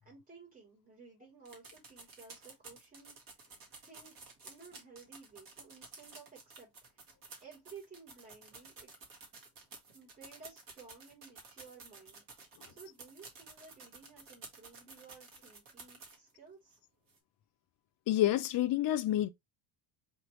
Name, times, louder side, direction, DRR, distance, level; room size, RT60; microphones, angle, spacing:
voice 1, 0.0-3.5 3.8-4.2 4.4-7.1 7.4-9.2 9.9-12.2 12.7-16.8, right 5 dB, 15° right, 3.1 m, -55 dB
sound 1, 1.4-16.3 16.7-16.8 17.1-17.2, right 4 dB, 40° right, 1.6 m, -53 dB
voice 2, 18.1-19.3, left 13 dB, 45° left, 0.4 m, -28 dB
4.9 x 3.2 x 3.0 m
cardioid pair, 150°, 49 cm